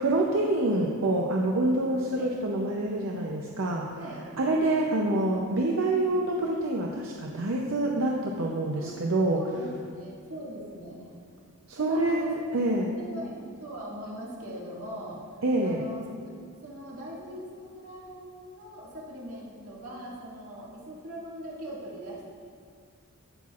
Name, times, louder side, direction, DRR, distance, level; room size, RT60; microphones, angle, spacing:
voice 1, 0.0-3.9 4.4-9.4 11.7-12.9 15.4-15.8, right 2 dB, 65° right, -1 dB, 0.6 m, -26 dB
voice 2, 4.0-4.5 8.8-8.9 9.3-11.1 11.8-15.2 15.6-22.2, equal, 85° right, -5 dB, 2.0 m, -41 dB
14.5 x 5.8 x 2.4 m, 2.1 s
head